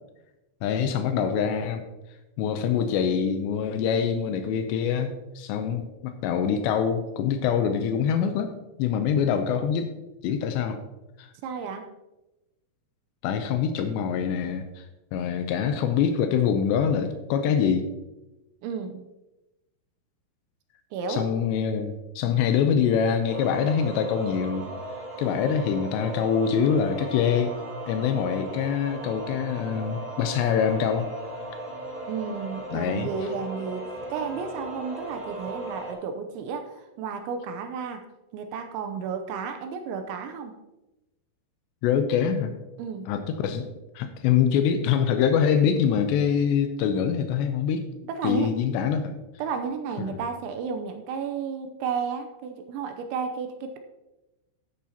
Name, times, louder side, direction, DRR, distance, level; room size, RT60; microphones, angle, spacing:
voice 1, 0.6-1.8 2.4-8.5 8.8-9.9 10.2-10.8 11.2-11.3 13.2-14.9 15.1-17.9 21.1-24.7 25.2-27.6 27.9-31.1 32.7-33.1 41.8-42.5 43.1-43.7 44.0-47.9 48.2-49.2 50.0-50.2, left 7 dB, 90° left, 7 dB, 2.4 m, -24 dB
voice 2, 11.4-11.9 18.6-19.0 20.9-21.3 32.1-38.0 38.3-40.5 42.8-43.1 48.1-48.5 49.4-53.8, right 6 dB, 80° right, 6 dB, 2.8 m, -32 dB
sound 1, 23.3-35.9, right 1 dB, 10° right, 2.8 m, -37 dB
13.5 x 9.3 x 2.9 m, 1.0 s
omnidirectional pair, 5.8 m